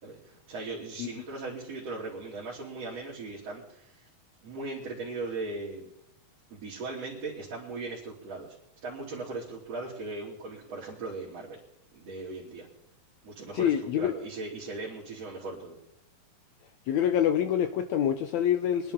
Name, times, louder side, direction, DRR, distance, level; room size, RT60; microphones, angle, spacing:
voice 1, 0.0-4.1 4.4-5.9 6.5-8.5 8.8-11.6 11.9-12.7 13.2-15.8, right 3 dB, 50° right, -6 dB, 3.5 m, -38 dB
voice 2, 13.5-14.1 16.9-18.9, left 9 dB, 80° left, 8 dB, 1.6 m, -26 dB
24.0 x 11.0 x 3.7 m, 0.78 s
omnidirectional pair, 3.9 m